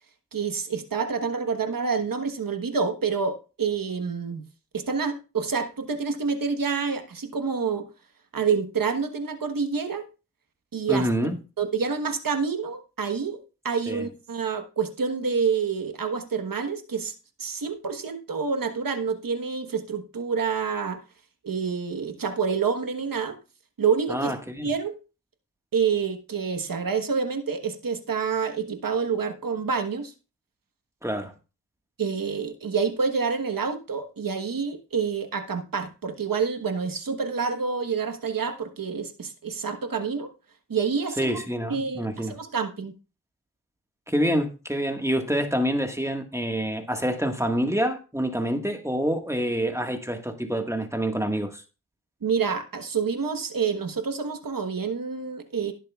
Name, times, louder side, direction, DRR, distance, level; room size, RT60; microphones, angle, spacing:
voice 1, 0.3-4.4 4.7-7.9 8.3-10.0 10.7-11.1 11.6-13.4 13.6-17.1 17.4-21.0 21.4-23.4 23.8-24.3 24.6-24.9 25.7-30.1 32.0-40.3 40.7-41.4 41.7-42.9 52.2-55.7, right 5 dB, 80° right, 1.3 m, -27 dB
voice 2, 10.9-11.4 13.9-14.1 24.1-24.7 31.0-31.3 41.2-42.3 44.1-51.6, equal, 10° right, 1.6 m, -27 dB
16.5 x 7.5 x 2.4 m
cardioid pair, 45°, 33 cm